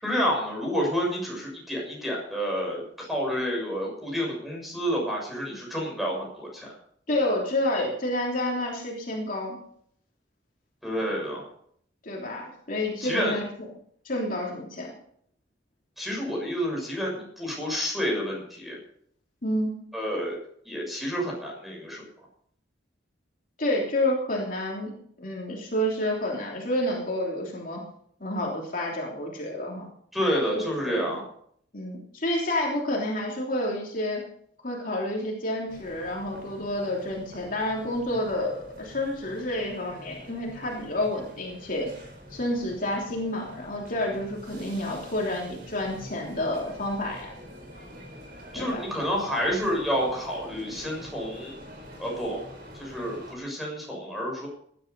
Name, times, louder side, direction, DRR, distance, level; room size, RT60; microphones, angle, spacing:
voice 1, 0.0-6.7 10.8-11.4 13.0-13.4 16.0-18.8 19.9-20.4 20.6-22.1 30.1-31.2 48.5-51.6 52.0-52.4 52.8-54.5, equal, ahead, -2 dB, 6.7 m, -29 dB
voice 2, 7.1-9.6 12.0-13.4 14.0-14.9 19.4-19.8 23.6-27.8 28.2-29.9 30.5-31.1 31.7-34.2 34.6-41.9 42.3-47.3 48.5-48.8, left 1 dB, 50° left, -2 dB, 3.2 m, -29 dB
sound 1, 35.7-53.4, equal, 55° right, 4.2 m, -46 dB
17.5 x 11.5 x 5.4 m, 0.66 s
head